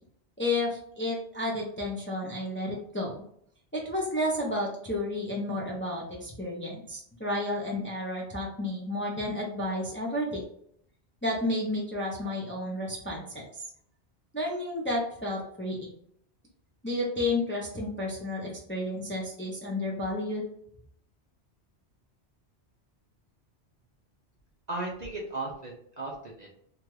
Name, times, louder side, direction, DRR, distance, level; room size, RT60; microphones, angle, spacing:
voice 1, 0.4-3.2 3.7-10.4 11.2-13.6 14.3-15.9 16.8-20.5, left 1 dB, 15° left, -3 dB, 0.5 m, -31 dB
voice 2, 24.7-26.5, right 2 dB, 50° right, -2 dB, 0.5 m, -36 dB
2.8 x 2.3 x 3.1 m, 0.66 s
omnidirectional pair, 1.1 m